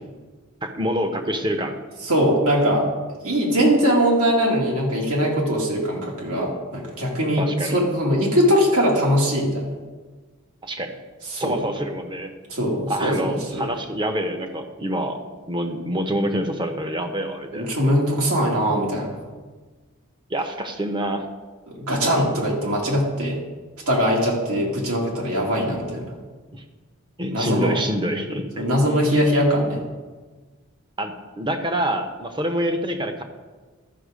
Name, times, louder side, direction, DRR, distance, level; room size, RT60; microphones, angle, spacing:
voice 1, 0.6-1.8 7.4-7.8 10.6-10.9 11.4-12.3 12.9-15.2 15.5-17.7 20.3-21.3 26.5-26.6 27.2-28.6 31.0-33.2, right 1 dB, 20° right, 6 dB, 0.8 m, -26 dB
voice 2, 2.0-2.8 3.2-9.6 11.3-11.6 12.5-13.7 17.5-19.2 21.7-23.4 23.9-26.1 27.3-27.8 28.6-29.8, equal, 80° right, -2 dB, 2.4 m, -21 dB
12.5 x 6.0 x 5.0 m, 1.4 s
head